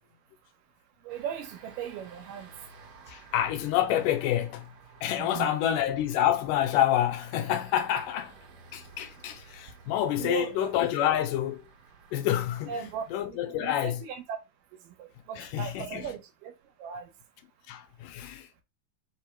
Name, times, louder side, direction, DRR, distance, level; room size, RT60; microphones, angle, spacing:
voice 1, 1.0-2.5 5.2-5.7 10.2-10.7 12.7-14.4 14.8-16.5 16.8-17.1, right 8 dB, 85° right, 2.5 m, -38 dB
sound 1, 1.1-13.2, right 4 dB, 65° right, 1.6 m, -54 dB
voice 2, 3.1-4.7 5.0-8.4 8.7-11.6 12.1-12.7 13.1-14.0 15.4-16.2 17.7-18.6, left 11 dB, 80° left, 2.1 m, -28 dB
5.4 x 2.1 x 4.4 m
omnidirectional pair, 3.7 m